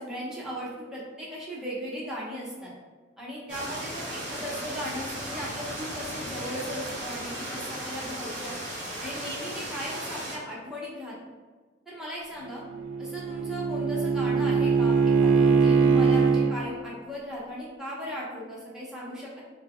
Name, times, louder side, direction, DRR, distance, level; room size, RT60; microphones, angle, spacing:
voice 1, 0.0-2.7 3.2-8.6 9.0-11.2 11.9-12.6 13.0-19.4, equal, 5° right, -7 dB, 0.9 m, -37 dB
sound 1, 3.5-10.4, right 1 dB, 40° right, 1.2 m, -36 dB
Bowed string instrument, 12.5-16.5, right 5 dB, 85° right, 0.4 m, -22 dB
3.5 x 2.2 x 3.7 m, 1.4 s
head